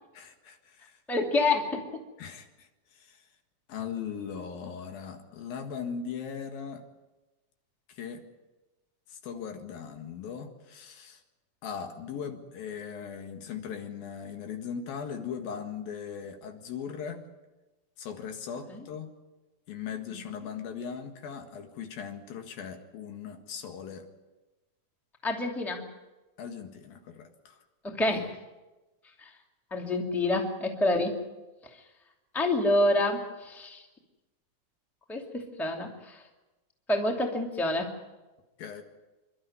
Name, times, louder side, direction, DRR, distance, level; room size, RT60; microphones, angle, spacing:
voice 1, 0.1-1.0 2.2-3.2 3.7-6.8 7.9-8.2 9.1-11.2 11.6-17.3 18.0-19.1 19.7-24.1 26.4-27.6 38.6-38.8, left 7 dB, 75° left, 5 dB, 3.6 m, -39 dB
voice 2, 1.1-2.0 18.7-18.8 20.1-20.2 25.2-25.8 27.8-28.3 29.2-29.3 29.7-31.2 31.6-31.8 32.3-33.8 35.1-36.2 36.9-37.9, left 2 dB, ahead, 1 dB, 1.7 m, -28 dB
28.0 x 12.5 x 9.5 m, 1.1 s
omnidirectional pair, 4.2 m